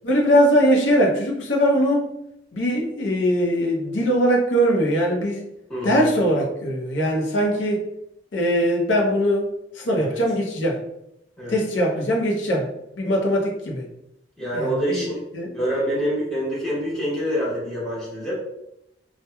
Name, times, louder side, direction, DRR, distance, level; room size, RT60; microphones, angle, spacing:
voice 1, 0.0-2.1 2.5-5.5 5.8-7.8 8.3-9.5 9.7-10.8 11.5-12.7 13.0-13.8 14.5-15.0 15.3-15.6, equal, 85° left, 0 dB, 0.6 m, -21 dB
voice 2, 5.7-6.1 9.9-10.1 11.4-11.6 14.4-15.2 15.5-18.3, equal, 5° left, -8 dB, 0.9 m, -26 dB
2.9 x 2.1 x 2.2 m, 0.83 s
head